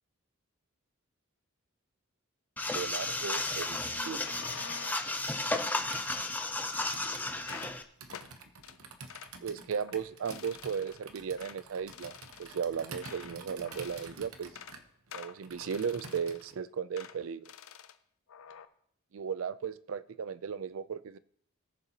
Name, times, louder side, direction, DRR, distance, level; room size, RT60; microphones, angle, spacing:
sound 1, 2.6-7.8, left 2 dB, 10° left, 0.5 m, -33 dB
voice 1, 2.7-4.3 9.4-14.5 15.1-17.5 19.1-21.2, right 6 dB, 65° right, 0.4 m, -36 dB
sound 2, 4.0-5.1 5.5-5.8 6.4-7.1 7.4-7.8 8.1-8.3 8.6-8.8 9.1-9.3 9.8-10.0 10.3-11.0 11.4-11.6 11.9-13.4 13.7-14.1 14.4-14.8 15.1-16.5 17.0-17.2 17.5-18.0 18.3-18.7, left 7 dB, 70° left, 0.6 m, -48 dB
Computer keyboard, 5.8-16.6, right 4 dB, 80° right, 1.1 m, -49 dB
19.0 x 7.0 x 2.9 m
head